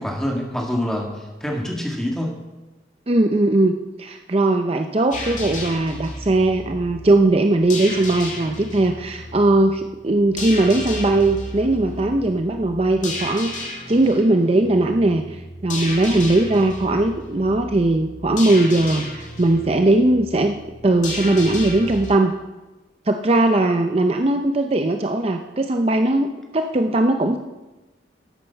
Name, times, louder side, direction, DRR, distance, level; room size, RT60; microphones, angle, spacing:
voice 1, 0.0-2.4, equal, 5° left, 0 dB, 1.8 m, -26 dB
voice 2, 3.1-20.6 20.8-22.3 23.1-27.4, right 2 dB, 35° right, 5 dB, 0.6 m, -19 dB
sound 1, 5.1-22.1, left 2 dB, 45° left, 2.5 m, -33 dB
12.5 x 8.7 x 5.7 m, 1.1 s
head